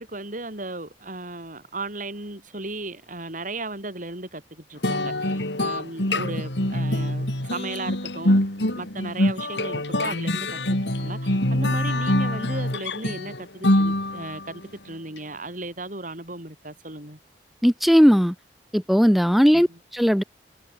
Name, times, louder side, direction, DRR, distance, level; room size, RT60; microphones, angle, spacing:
voice 1, 0.0-8.4 8.7-17.2 19.5-19.8, right 2 dB, 45° right, 7.1 m, -36 dB
sound 1, 4.8-14.5, left 1 dB, 80° left, 5.6 m, -24 dB
voice 2, 17.6-18.3 18.7-19.7 19.9-20.2, equal, ahead, 3.7 m, -17 dB
head